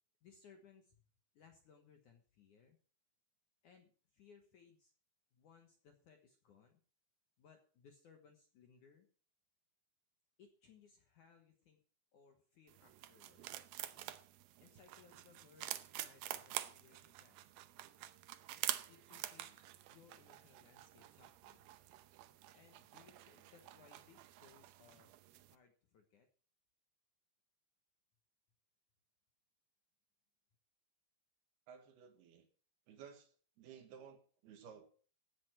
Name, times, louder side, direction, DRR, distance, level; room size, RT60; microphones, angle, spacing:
voice 1, 0.2-1.0 1.3-2.8 3.6-4.9 5.3-6.8 7.4-9.1 10.4-11.8 12.1-13.5 14.6-15.7 16.0-17.3 18.9-21.6 22.5-25.1 25.4-26.3, left 6 dB, 65° left, 5 dB, 2.1 m, -65 dB
sound 1, 12.7-25.6, right 14 dB, 80° right, 2.2 m, -48 dB
voice 2, 31.7-32.5 32.9-34.9, right 7 dB, 65° right, 6 dB, 3.4 m, -56 dB
15.5 x 9.4 x 4.5 m, 0.42 s
omnidirectional pair, 5.2 m